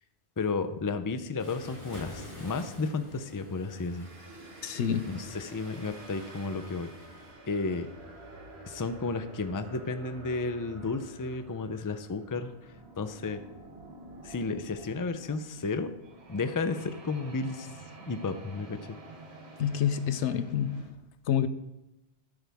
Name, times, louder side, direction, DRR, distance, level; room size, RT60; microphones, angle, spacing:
voice 1, 0.4-4.1 5.1-6.9 7.5-7.9 8.6-12.5 13.0-13.4 14.2-15.9 16.3-17.7 18.1-19.0, left 3 dB, 25° left, 9 dB, 0.5 m, -32 dB
Waves surf, 1.4-7.3, equal, 25° right, 3.1 m, -49 dB
sound 1, 3.9-20.9, right 2 dB, 65° right, 1.8 m, -49 dB
voice 2, 4.6-5.2 19.6-20.9 21.3-21.5, left 9 dB, 80° left, 12 dB, 1.0 m, -28 dB
13.0 x 8.6 x 3.6 m, 0.98 s
omnidirectional pair, 1.2 m